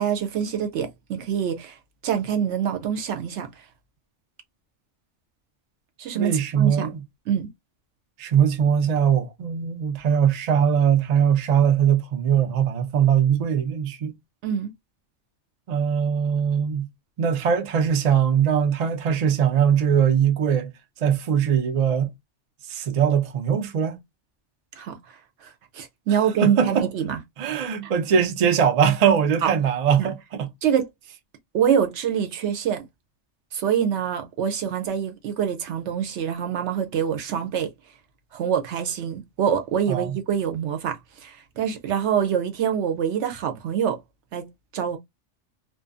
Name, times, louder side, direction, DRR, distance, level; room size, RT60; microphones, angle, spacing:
voice 1, 0.0-1.8 2.0-3.5 6.0-6.9 7.3-7.5 14.4-14.7 24.8-24.9 25.4-27.2 27.8-27.9 29.4-29.5 30.0-30.1 30.6-30.9 31.5-32.8 33.5-37.7 38.3-44.0 44.3-44.4 44.7-45.0, right 8 dB, 75° right, 0.9 m, -25 dB
voice 2, 6.2-7.0 8.2-14.1 15.7-16.9 17.2-20.7 21.0-22.1 22.7-24.0 26.4-26.9 27.4-30.5 39.9-40.2, right 8 dB, 55° right, 0.4 m, -21 dB
2.5 x 2.2 x 2.4 m
omnidirectional pair, 1.3 m